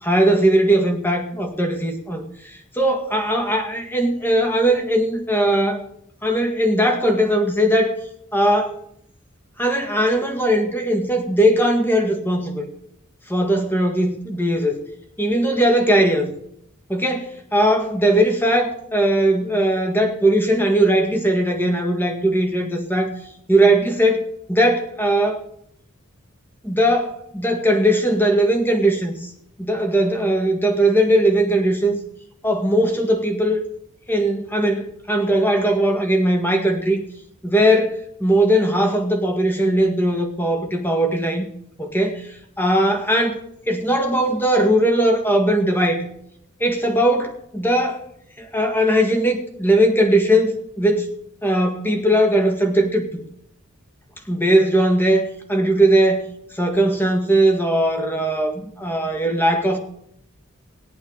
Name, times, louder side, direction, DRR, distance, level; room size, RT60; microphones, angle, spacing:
voice 1, 0.0-2.2 2.7-5.8 6.2-8.0 8.3-8.8 9.6-12.6 13.3-14.8 15.2-16.3 16.9-17.2 17.5-23.1 23.5-25.4 26.6-29.3 29.6-32.0 32.4-33.6 34.1-37.0 37.4-41.4 41.8-42.2 42.6-43.4 43.7-46.1 46.6-48.0 48.4-51.1 51.4-53.1 54.3-56.2 56.5-59.8, right 1 dB, 10° left, 4 dB, 1.7 m, -19 dB
19.5 x 8.7 x 3.9 m, 0.71 s
head